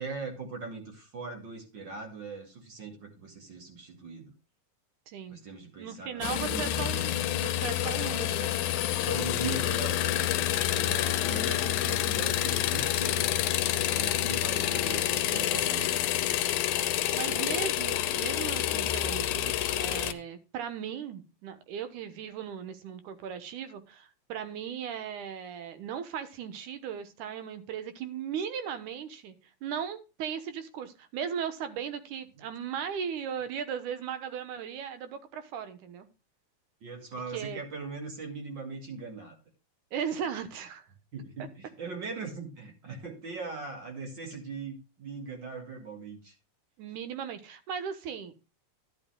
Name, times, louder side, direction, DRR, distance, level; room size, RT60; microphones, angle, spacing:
voice 1, 0.0-4.3 5.3-7.0 9.0-13.3 13.9-15.9 17.3-17.6 36.8-39.4 41.1-46.3, right 4 dB, 40° right, 4 dB, 2.7 m, -40 dB
voice 2, 5.1-5.4 5.8-8.5 16.7-29.4 29.6-36.1 37.3-37.6 39.9-40.9 46.8-48.3, right 8 dB, 85° right, 11 dB, 2.6 m, -37 dB
sound 1, 6.2-20.1, left 13 dB, 85° left, 2.3 m, -28 dB
12.5 x 10.5 x 2.2 m, 0.29 s
omnidirectional pair, 3.4 m